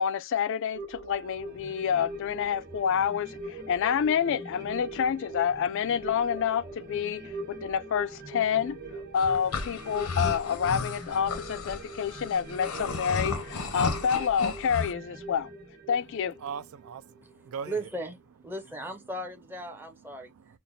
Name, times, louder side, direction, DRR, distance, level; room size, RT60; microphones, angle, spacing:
voice 1, 0.0-8.8 9.1-15.5 15.9-16.3, left 7 dB, 55° left, 0.3 m, -28 dB
sound 1, 0.7-17.5 17.9-18.0, right 2 dB, 45° right, 1.2 m, -42 dB
sound 2, 9.2-14.9, left 4 dB, 85° left, 0.8 m, -34 dB
voice 2, 16.4-17.9 20.1-20.6, right 6 dB, 70° right, 0.4 m, -40 dB
voice 3, 17.6-18.2 18.4-20.3, right 1 dB, 10° right, 0.6 m, -36 dB
5.7 x 2.1 x 2.6 m
head